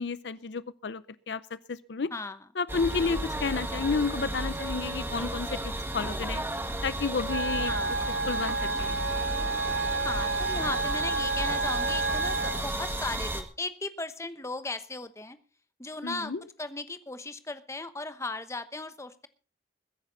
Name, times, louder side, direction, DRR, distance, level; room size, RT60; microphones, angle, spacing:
voice 1, 0.0-1.4 1.7-2.1 2.6-5.6 5.9-6.4 6.8-7.7 8.3-9.0 16.0-16.4, left 4 dB, 70° left, 17 dB, 0.6 m, -31 dB
voice 2, 2.1-2.5 7.7-8.0 10.0-15.4 15.8-16.3 16.6-19.3, left 3 dB, 15° left, 11 dB, 1.0 m, -36 dB
sound 1, 2.7-13.4, right 1 dB, 15° right, 1.7 m, -33 dB
Wind instrument woodwind instrument, 7.3-12.6, right 3 dB, 80° right, 0.8 m, -30 dB
21.5 x 10.0 x 3.9 m, 0.35 s
head